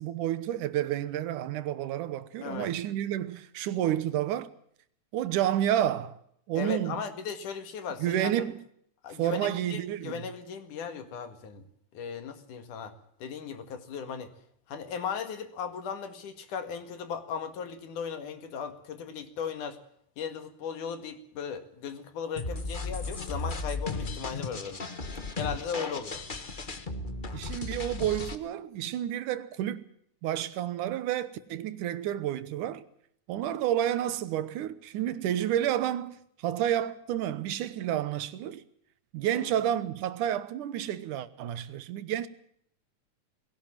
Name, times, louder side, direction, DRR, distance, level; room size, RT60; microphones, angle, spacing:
voice 1, 0.0-4.5 5.1-6.2 6.5-7.0 8.0-8.6 9.2-10.3 27.3-29.8 30.2-32.8 33.3-38.6 39.1-42.3, right 11 dB, 85° right, 2.6 m, -30 dB
voice 2, 6.5-8.3 9.0-11.7 11.9-12.9 13.2-14.3 14.7-19.8 20.2-24.8 25.4-26.2 39.3-39.6, left 6 dB, 85° left, 3.5 m, -37 dB
sound 1, 22.4-28.4, left 3 dB, 65° left, 0.5 m, -35 dB
20.0 x 17.5 x 7.4 m
omnidirectional pair, 3.5 m